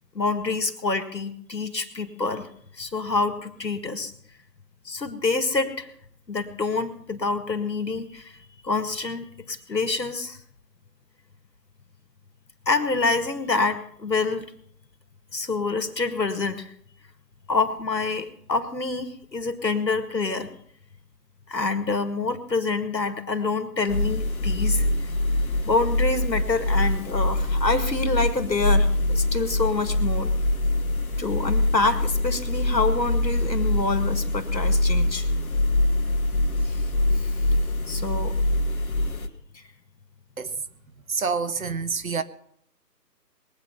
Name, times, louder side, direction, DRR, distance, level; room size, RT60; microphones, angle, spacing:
voice 1, 0.1-2.4 2.8-4.1 4.9-5.9 6.3-8.3 8.6-10.4 12.7-14.5 15.3-16.7 17.5-20.5 21.5-24.9 25.6-30.3 31.2-35.3 36.7-36.8 37.9-38.3, left 3 dB, 90° left, 2.0 m, -26 dB
sound 1, 23.9-39.3, left 1 dB, 55° left, 1.6 m, -24 dB
voice 2, 41.1-42.2, right 5 dB, 55° right, 1.0 m, -27 dB
21.0 x 8.5 x 5.6 m
figure-of-eight pair, 155°, 49 cm